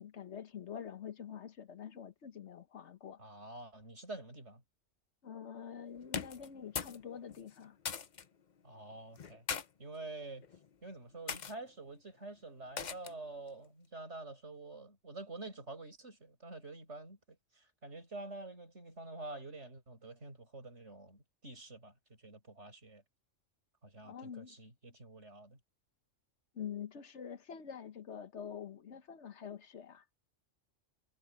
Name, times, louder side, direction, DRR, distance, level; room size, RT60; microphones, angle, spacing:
voice 1, 0.0-3.2 5.2-7.8 24.0-24.5 26.5-30.0, left 8 dB, 65° left, 1.3 m, -46 dB
voice 2, 3.2-4.6 8.6-9.5 9.8-10.5 10.8-23.0 23.8-25.6, right 2 dB, 65° right, 6.9 m, -48 dB
sound 1, 6.0-7.0 7.3-8.3 9.2-9.7 10.4-10.7 11.3-11.5 12.8-13.2, left 6 dB, 40° left, 0.8 m, -40 dB
omnidirectional pair, 1.3 m